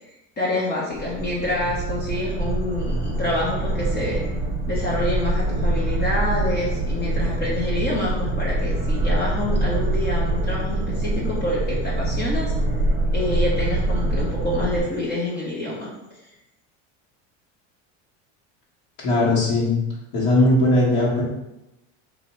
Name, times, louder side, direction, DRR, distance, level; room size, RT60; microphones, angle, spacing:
voice 1, 0.4-4.2 4.7-12.5 13.1-15.9, left 1 dB, 25° left, -5 dB, 0.7 m, -27 dB
sound 1, 0.9-14.8, right 2 dB, 20° right, 0.8 m, -24 dB
voice 2, 19.0-19.8 20.1-21.2, left 2 dB, 60° left, -7 dB, 1.4 m, -19 dB
2.8 x 2.6 x 4.2 m, 0.91 s
supercardioid pair, 130°, 37 cm